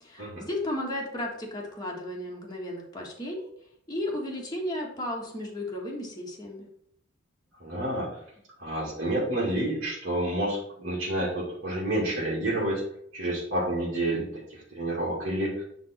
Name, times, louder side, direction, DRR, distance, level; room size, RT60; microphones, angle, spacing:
voice 1, 0.0-3.5 3.9-6.7, left 1 dB, 20° left, -2 dB, 1.7 m, -34 dB
voice 2, 7.6-8.2 8.6-12.8 13.1-15.6, right 1 dB, 50° right, -7 dB, 2.3 m, -29 dB
9.4 x 3.6 x 4.4 m, 0.70 s
head